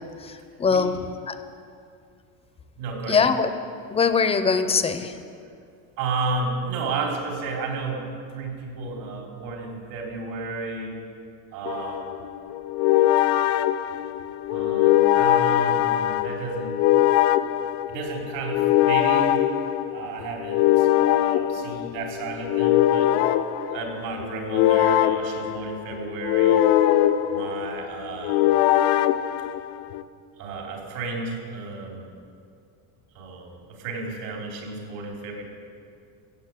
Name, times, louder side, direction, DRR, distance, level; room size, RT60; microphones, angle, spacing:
voice 1, 0.6-1.0 1.3-1.4 3.1-3.5 3.9-5.1, left 5 dB, 15° left, 10 dB, 0.5 m, -21 dB
voice 2, 2.8-3.2 6.0-10.9 11.5-12.1 14.5-16.7 17.9-19.4 19.9-23.1 23.7-26.6 27.3-28.6 30.4-32.1 33.1-35.4, right 3 dB, 75° right, 0 dB, 3.9 m, -32 dB
sound 1, 11.6-30.0, left 13 dB, 80° left, 0.8 m, -22 dB
15.5 x 8.1 x 8.2 m, 2.4 s
cardioid pair, 150°, 43 cm